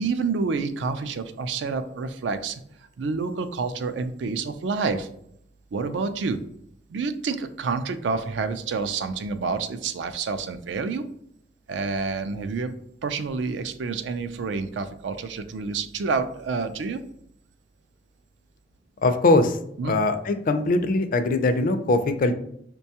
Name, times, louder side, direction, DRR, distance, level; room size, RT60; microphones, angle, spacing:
voice 1, 0.0-2.6 3.0-5.1 5.7-6.4 6.9-11.0 11.7-12.7 13.0-17.0 19.8-19.9, right 4 dB, 85° right, 10 dB, 0.4 m, -28 dB
voice 2, 19.0-19.6 19.9-22.3, left 2 dB, 50° left, 9 dB, 0.4 m, -21 dB
5.2 x 2.2 x 2.8 m, 0.71 s
head